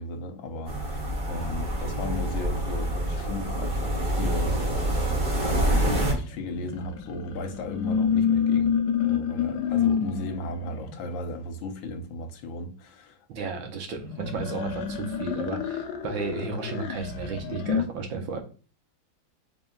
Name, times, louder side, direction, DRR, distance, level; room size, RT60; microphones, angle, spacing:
voice 1, 0.0-4.6 5.3-8.8 9.0-13.3, left 1 dB, 85° left, 1.5 m, -36 dB
sound 1, 0.7-6.1, right 1 dB, 35° right, 0.9 m, -26 dB
sound 2, 1.2-3.1 4.1-11.0 14.0-17.9, left 7 dB, 70° left, 1.1 m, -29 dB
voice 2, 13.3-18.4, right 4 dB, 85° right, 1.6 m, -33 dB
4.0 x 3.6 x 2.3 m
omnidirectional pair, 2.1 m